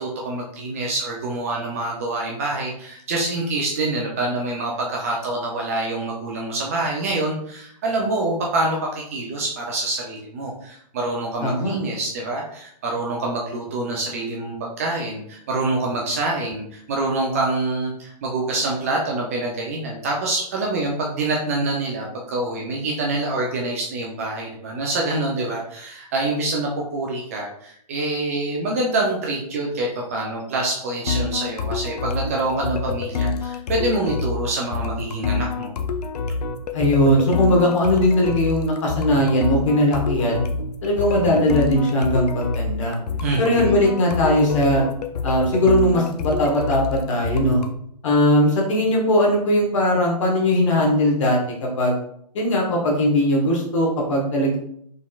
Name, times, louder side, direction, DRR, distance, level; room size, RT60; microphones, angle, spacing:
voice 1, 0.0-35.8 43.2-43.8, right 2 dB, 20° right, -1 dB, 0.4 m, -26 dB
voice 2, 11.4-11.7 36.7-40.4 40.8-42.9 43.4-44.8 45.2-47.6 48.0-52.0 52.3-54.6, left 1 dB, 50° left, -1 dB, 1.3 m, -19 dB
sound 1, 31.1-47.8, left 4 dB, 70° left, 0.5 m, -27 dB
4.0 x 3.6 x 2.3 m, 0.69 s
hypercardioid pair, 150°, 21 cm